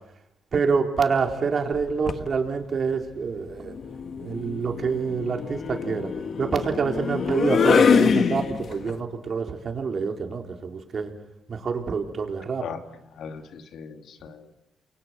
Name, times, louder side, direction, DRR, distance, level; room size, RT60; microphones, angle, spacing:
voice 1, 0.5-3.8 4.2-6.1 6.4-11.1 11.5-12.6, right 5 dB, 45° right, 4 dB, 4.5 m, -26 dB
sound 1, 1.7-2.3 3.6-8.9, left 6 dB, 55° left, 1.4 m, -24 dB
voice 2, 13.1-14.5, left 7 dB, 70° left, 7 dB, 2.7 m, -38 dB
29.0 x 23.5 x 7.8 m, 0.82 s
cardioid pair, 90°, 0 cm